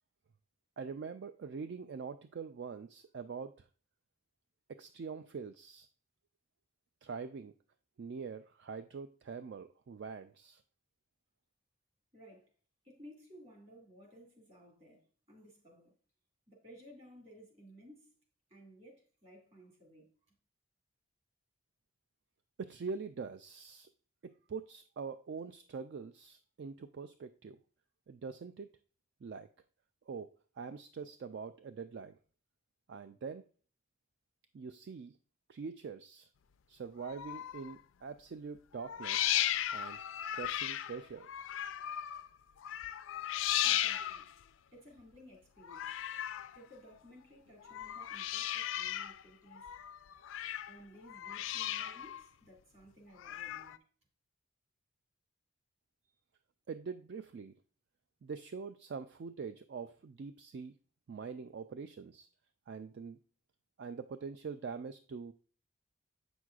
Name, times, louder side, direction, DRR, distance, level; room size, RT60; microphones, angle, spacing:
voice 1, 0.8-3.7 4.7-5.9 7.0-7.5 8.0-10.6 22.6-23.9 24.2-27.6 28.1-28.7 29.2-29.5 30.1-30.3 30.6-32.2 32.9-33.4 34.5-35.2 35.5-36.3 36.7-39.4 39.7-40.0 40.3-41.3 56.7-57.5 58.2-60.7 61.1-62.3 62.7-63.2 63.8-65.3, right 5 dB, 50° right, 0.3 m, -44 dB
voice 2, 12.1-12.5 12.8-16.0 16.5-18.2 18.5-20.3 43.6-44.3 44.7-46.0 46.5-49.7 50.7-53.8, equal, 30° right, 2.0 m, -57 dB
sound 1, 37.0-37.8 38.8-42.3 42.6-44.4 45.6-46.6 47.6-49.2 49.5-50.8 51.1-52.2 53.2-53.8, left 12 dB, 65° left, 0.3 m, -36 dB
8.1 x 6.1 x 2.4 m
head